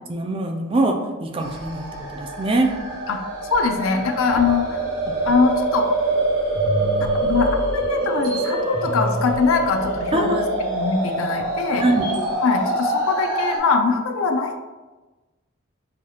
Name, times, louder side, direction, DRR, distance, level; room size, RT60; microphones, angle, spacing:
voice 1, 0.1-1.0 1.2-2.7 10.1-10.5 11.8-12.1, right 2 dB, 25° right, 3 dB, 0.4 m, -22 dB
sound 1, 1.4-13.6, right 1 dB, 60° right, 1.1 m, -25 dB
voice 2, 3.5-4.8 5.3-5.9 7.0-11.8 12.4-14.6, left 4 dB, 90° left, 5 dB, 0.5 m, -22 dB
sound 2, 4.2-6.2 6.5-12.3, right 1 dB, 80° right, 1.3 m, -32 dB
6.5 x 2.4 x 2.8 m, 1.2 s
head